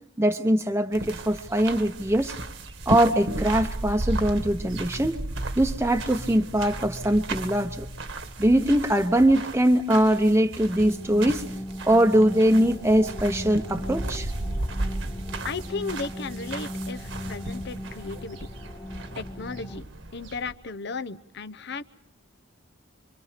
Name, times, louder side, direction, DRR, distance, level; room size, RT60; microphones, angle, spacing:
voice 1, 0.2-2.3 2.9-5.2 5.6-7.9 8.4-11.4 11.8-14.3, right 1 dB, 15° right, 4 dB, 0.9 m, -22 dB
sound 1, 0.9-20.5, right 2 dB, 65° right, 1.7 m, -35 dB
sound 2, 10.8-19.8, left 1 dB, 20° left, 0.9 m, -38 dB
voice 2, 15.4-18.5 19.2-19.8 20.1-21.8, left 4 dB, 60° left, 12 dB, 0.9 m, -35 dB
26.5 x 25.5 x 5.1 m, 0.74 s
head